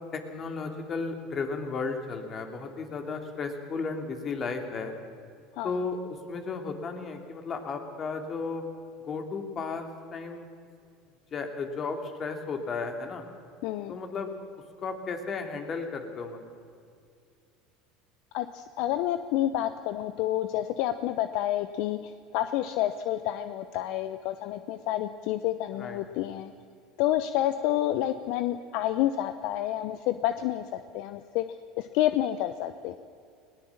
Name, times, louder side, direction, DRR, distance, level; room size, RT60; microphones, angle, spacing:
voice 1, 0.1-4.9 5.6-6.0 6.3-8.6 9.0-10.5 11.3-13.2 13.9-14.3 14.8-16.6 25.8-26.0, left 4 dB, 40° left, 5 dB, 3.0 m, -34 dB
voice 2, 13.6-14.0 18.3-22.0 22.3-26.5 27.0-31.4 31.8-32.9, left 13 dB, 65° left, 11 dB, 0.7 m, -29 dB
20.0 x 18.5 x 7.3 m, 2.3 s
hypercardioid pair, 85°, 0 cm